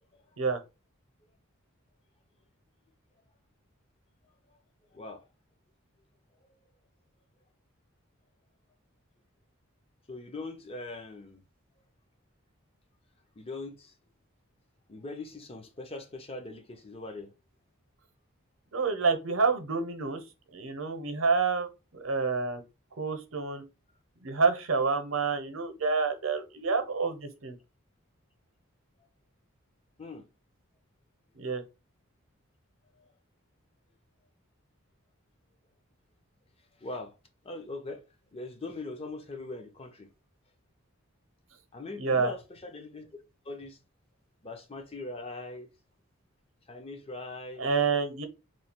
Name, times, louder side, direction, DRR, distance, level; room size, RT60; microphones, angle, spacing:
voice 1, 10.1-11.4 13.4-13.9 14.9-17.3 30.0-30.3 36.8-37.1 37.4-38.0 38.3-40.1 41.7-43.1 43.5-43.8 44.4-45.7 46.7-47.7, left 2 dB, 25° left, 0.6 m, -41 dB
voice 2, 18.7-20.2 20.5-22.6 23.0-23.6 24.2-27.5 31.4-31.6 42.0-42.3 47.6-48.3, right 4 dB, 70° right, 0.8 m, -28 dB
3.1 x 2.3 x 4.3 m
head